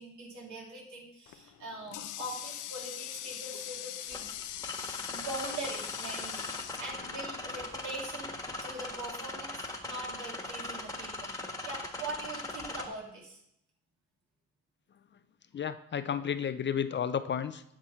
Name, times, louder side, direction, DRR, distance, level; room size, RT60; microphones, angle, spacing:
voice 1, 0.0-4.3 5.1-11.3 11.6-13.4, right 2 dB, 70° right, -1 dB, 2.9 m, -42 dB
Water tap faucet, 1.3-7.7, left 12 dB, 85° left, 0.6 m, -42 dB
sound 1, 4.1-12.8, left 2 dB, 10° left, 1.4 m, -40 dB
voice 2, 15.5-17.6, left 8 dB, 40° left, 12 dB, 0.5 m, -32 dB
9.7 x 6.1 x 4.4 m, 0.75 s
cardioid pair, 90°, 30 cm